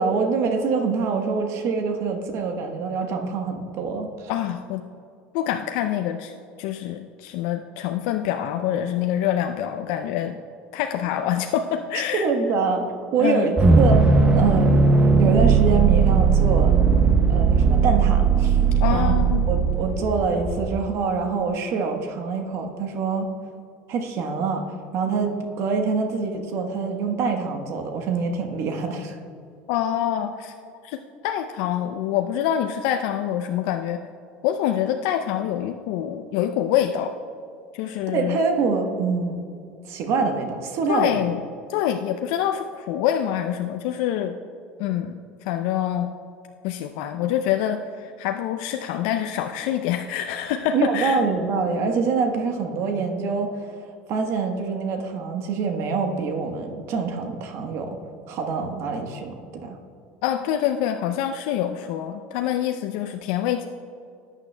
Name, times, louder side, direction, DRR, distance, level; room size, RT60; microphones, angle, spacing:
voice 1, 0.0-4.3 12.1-12.8 13.1-14.0 14.3-14.9 15.2-16.7 17.3-18.6 18.9-19.2 19.5-23.3 23.9-24.6 24.9-29.2 38.1-39.5 39.8-41.2 50.7-53.7 54.1-58.0 58.3-59.8, right 4 dB, 60° right, 5 dB, 1.1 m, -25 dB
voice 2, 4.3-4.8 5.3-6.3 6.6-10.4 10.7-12.3 13.2-13.5 18.8-19.5 29.7-30.5 30.8-31.0 31.2-34.0 34.4-37.1 37.7-38.4 40.9-41.4 41.7-44.3 44.8-45.2 45.4-46.1 46.6-51.2 60.2-63.7, left 10 dB, 70° left, 5 dB, 0.4 m, -25 dB
sound 1, 13.6-20.8, right 5 dB, 25° right, 0.7 m, -18 dB
13.5 x 9.0 x 2.2 m, 2.4 s
hypercardioid pair, 90°, 5 cm